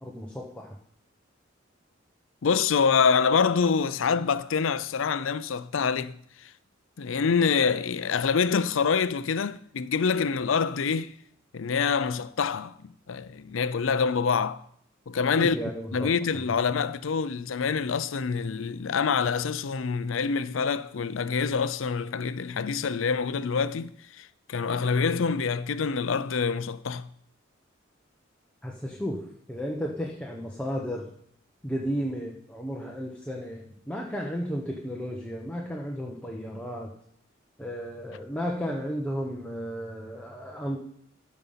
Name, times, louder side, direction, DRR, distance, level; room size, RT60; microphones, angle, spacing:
voice 1, 0.0-0.8 15.4-16.1 28.6-31.1 31.6-36.9 37.6-40.8, equal, 5° left, 1.0 m, -33 dB
voice 2, 2.4-6.2 7.0-11.1 11.5-14.6 15.1-15.6 15.9-27.1, left 5 dB, 80° left, 0.5 m, -26 dB
13.5 x 5.4 x 5.7 m
head